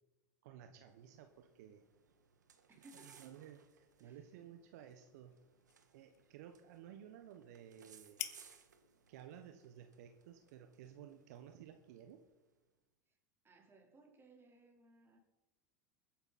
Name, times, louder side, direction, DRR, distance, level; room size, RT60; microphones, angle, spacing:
voice 1, 0.4-1.8 2.8-5.3 5.9-8.2 9.1-12.2, right 9 dB, 70° right, 1.2 m, -55 dB
sound 1, 0.8-12.5, right 6 dB, 90° right, 1.6 m, -66 dB
voice 2, 2.7-3.3 4.0-4.3 13.1-13.2 13.4-15.2, right 2 dB, 25° right, 4.3 m, -63 dB
sound 2, 3.9-11.6, left 14 dB, 65° left, 1.3 m, -54 dB
21.0 x 10.0 x 4.3 m
hypercardioid pair, 85°, 9 cm